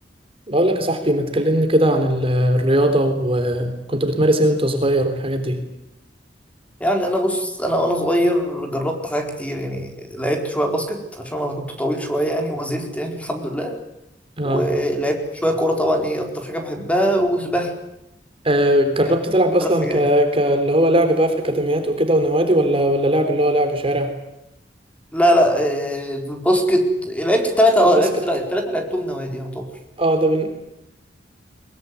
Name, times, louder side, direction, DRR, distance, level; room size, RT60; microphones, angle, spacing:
voice 1, 0.5-5.6 14.4-14.6 18.5-24.1 27.8-27.9 30.0-30.5, right 1 dB, 35° right, 6 dB, 3.6 m, -19 dB
voice 2, 6.8-13.8 14.4-15.1 15.4-17.7 18.9-19.2 19.6-20.2 25.1-29.7, equal, 10° left, 3 dB, 4.5 m, -21 dB
22.5 x 22.5 x 9.5 m, 0.85 s
head